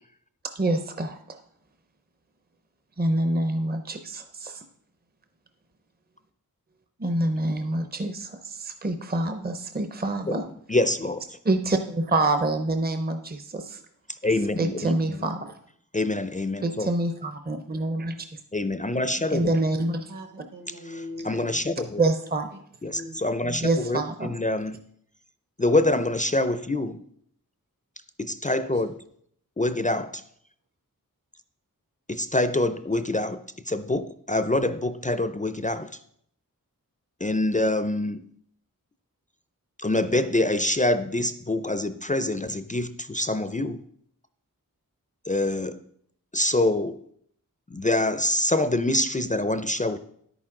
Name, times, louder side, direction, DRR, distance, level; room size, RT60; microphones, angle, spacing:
voice 1, 0.5-1.4 3.0-4.6 7.0-10.5 11.4-13.8 14.6-15.6 16.6-18.2 19.3-20.0 22.0-22.5 23.6-24.3, right 2 dB, 25° right, 7 dB, 0.7 m, -26 dB
voice 2, 10.7-11.2 14.2-15.0 15.9-16.9 18.5-19.5 21.2-22.0 22.8-24.8 25.6-27.0 28.2-29.0 29.6-30.2 32.1-33.4 33.7-35.9 37.2-38.2 39.8-43.8 45.3-45.8 46.3-47.0 47.7-50.0, left 2 dB, 20° left, 11 dB, 0.5 m, -25 dB
voice 3, 20.1-21.6 22.9-23.4 28.5-28.8, left 1 dB, 65° right, 4 dB, 1.8 m, -41 dB
10.0 x 9.0 x 3.7 m, 0.67 s
wide cardioid pair, 60°, 35 cm